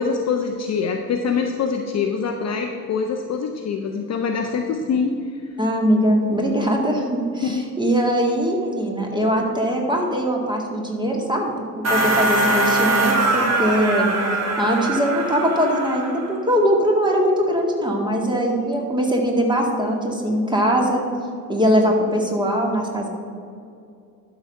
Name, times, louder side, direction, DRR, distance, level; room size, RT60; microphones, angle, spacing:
voice 1, 0.0-5.1 7.4-7.7, left 5 dB, 35° left, 4 dB, 0.7 m, -24 dB
voice 2, 5.6-14.1 14.6-21.0 21.5-23.1, equal, 10° right, 0 dB, 2.0 m, -21 dB
sound 1, 11.8-16.4, right 2 dB, 30° right, 1.7 m, -22 dB
12.0 x 4.1 x 6.5 m, 2.4 s
figure-of-eight pair, 60°, 49 cm